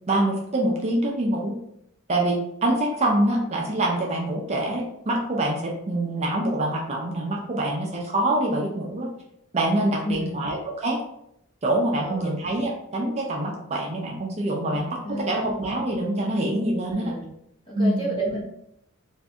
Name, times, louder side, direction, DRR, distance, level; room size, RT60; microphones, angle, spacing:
voice 1, 0.1-1.5 2.1-9.1 9.5-11.0 11.6-17.1 17.7-18.1, right 1 dB, 30° right, -1 dB, 0.4 m, -25 dB
voice 2, 10.0-10.4 11.9-12.3 14.6-15.5 16.9-17.3 17.7-18.4, right 1 dB, 25° left, -4 dB, 0.9 m, -32 dB
2.5 x 2.5 x 3.4 m, 0.76 s
head